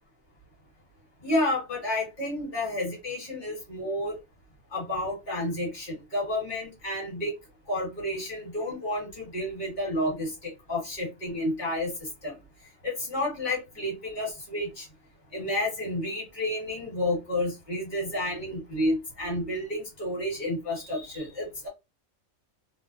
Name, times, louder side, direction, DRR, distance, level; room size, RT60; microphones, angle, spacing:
voice 1, 1.2-4.2 4.7-7.3 7.7-12.4 12.8-14.9 15.3-21.7, left 1 dB, 35° left, 1.3 m, -30 dB
2.5 x 2.0 x 2.4 m
omnidirectional pair, 1.5 m